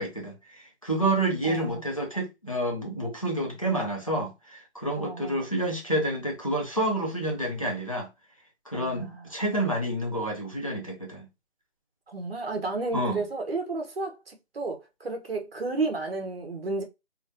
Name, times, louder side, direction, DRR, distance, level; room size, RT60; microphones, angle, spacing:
voice 1, 0.0-8.1 8.7-11.3 12.9-13.2, right 1 dB, 30° left, 0.5 m, -29 dB
voice 2, 1.4-1.9 5.0-5.5 8.7-9.3 12.1-16.8, right 3 dB, 60° right, 0.9 m, -32 dB
3.1 x 2.1 x 2.6 m
figure-of-eight pair, 175°, 34 cm